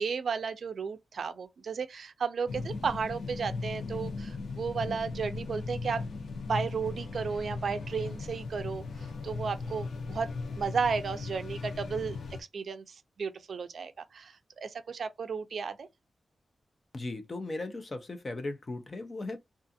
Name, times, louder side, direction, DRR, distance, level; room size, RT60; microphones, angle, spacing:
voice 1, 0.0-6.0 6.5-10.3 10.6-12.2 12.5-15.9, right 5 dB, 60° right, 0.4 m, -34 dB
sound 1, 2.5-12.4, left 3 dB, 80° left, 0.7 m, -37 dB
voice 2, 16.9-19.4, left 2 dB, 30° left, 0.5 m, -37 dB
2.4 x 2.4 x 2.6 m
wide cardioid pair, 170°, 0 cm